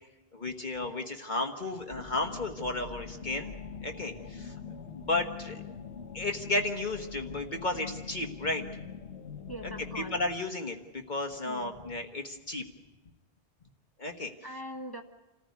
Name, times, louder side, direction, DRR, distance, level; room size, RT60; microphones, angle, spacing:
voice 1, 0.3-3.5 3.8-4.5 4.9-5.6 6.1-8.6 9.9-12.6 14.0-14.3, left 2 dB, 45° left, 4 dB, 1.5 m, -33 dB
sound 1, 1.9-10.3, left 6 dB, 90° left, 1.5 m, -43 dB
voice 2, 9.5-10.2 11.4-11.8 14.4-15.0, equal, 20° left, 5 dB, 1.3 m, -41 dB
27.0 x 15.0 x 9.4 m, 1.1 s
omnidirectional pair, 1.1 m